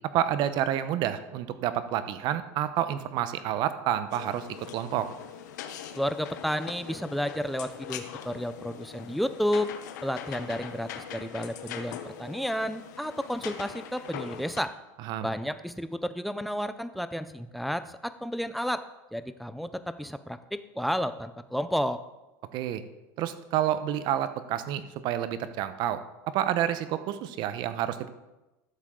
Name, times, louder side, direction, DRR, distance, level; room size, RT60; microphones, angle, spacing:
voice 1, 0.1-4.5 4.7-5.1 15.0-15.3 22.5-22.8 23.2-26.0 26.3-28.1, right 11 dB, 55° right, 12 dB, 0.8 m, -29 dB
sound 1, 4.1-14.6, left 9 dB, 90° left, 0.9 m, -42 dB
voice 2, 5.9-9.7 10.0-14.7 15.2-18.8 19.1-22.0, equal, ahead, 11 dB, 0.5 m, -31 dB
12.5 x 7.3 x 3.8 m, 1.0 s
supercardioid pair, 120°, 9 cm